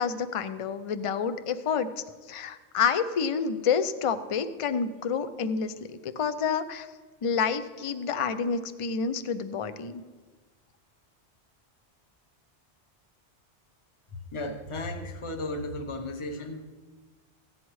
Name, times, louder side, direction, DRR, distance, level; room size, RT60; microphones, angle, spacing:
voice 1, 0.0-1.9 2.3-6.9 7.2-10.0, left 6 dB, 45° left, 11 dB, 0.4 m, -28 dB
voice 2, 14.1-16.7, left 1 dB, 30° left, 5 dB, 0.8 m, -35 dB
16.0 x 9.6 x 3.1 m, 1.4 s
omnidirectional pair, 1.2 m